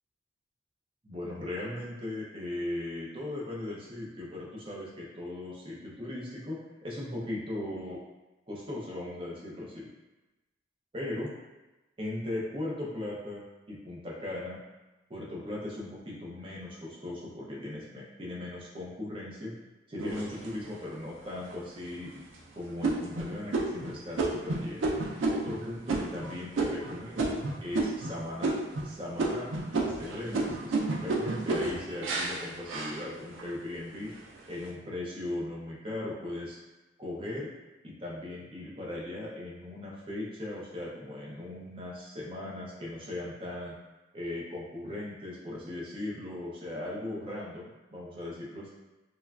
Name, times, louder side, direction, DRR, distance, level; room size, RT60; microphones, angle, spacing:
voice 1, 1.0-8.0 8.5-9.9 10.9-11.3 12.0-14.6 15.1-19.5 19.9-22.3 22.5-25.0 25.3-28.6 28.8-34.1 34.5-36.6 37.0-37.5 37.8-43.7 44.1-48.7, left 1 dB, 25° right, -4 dB, 0.5 m, -38 dB
sound 1, 20.0-20.8 21.4-21.5 22.0-22.4 22.8-28.1 28.4-28.9 29.2-33.5 34.0-34.5, right 3 dB, 90° right, 0.4 m, -31 dB
3.0 x 2.3 x 2.3 m, 1.1 s
head